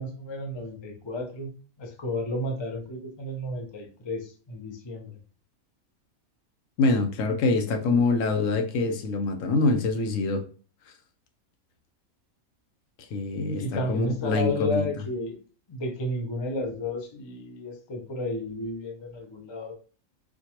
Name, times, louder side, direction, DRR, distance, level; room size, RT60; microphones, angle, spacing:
voice 1, 0.0-1.5 1.8-5.1 7.4-8.0 13.4-15.4 15.7-19.7, left 1 dB, 40° left, 2 dB, 0.4 m, -32 dB
voice 2, 6.8-10.4 13.1-14.9, left 3 dB, 70° left, 4 dB, 1.0 m, -25 dB
4.3 x 2.2 x 2.8 m, 0.39 s
omnidirectional pair, 1.5 m